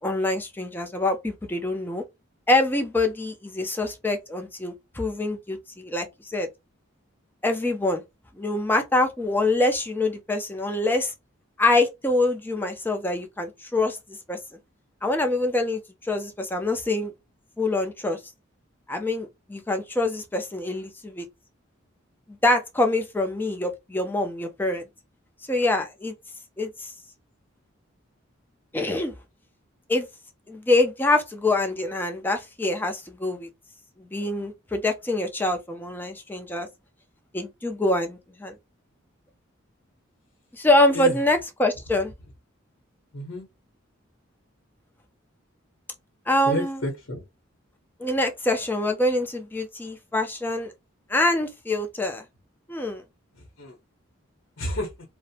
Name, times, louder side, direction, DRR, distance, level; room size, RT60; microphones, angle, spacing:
voice 1, 0.0-2.0 2.5-6.5 7.4-8.0 8.4-11.1 11.6-14.0 14.3-14.4 15.0-17.1 17.6-18.2 18.9-21.2 22.4-24.8 25.5-26.1 26.6-26.9 28.7-29.1 29.9-30.1 30.5-33.5 34.0-36.7 37.3-38.6 40.5-42.1 46.3-46.8 48.0-50.7 51.1-52.2 52.7-53.0, left 2 dB, 10° left, 0.4 m, -25 dB
voice 2, 43.1-43.4 46.4-47.2 53.4-53.8 54.6-54.9, left 1 dB, 65° left, 0.8 m, -30 dB
2.5 x 2.0 x 2.6 m
head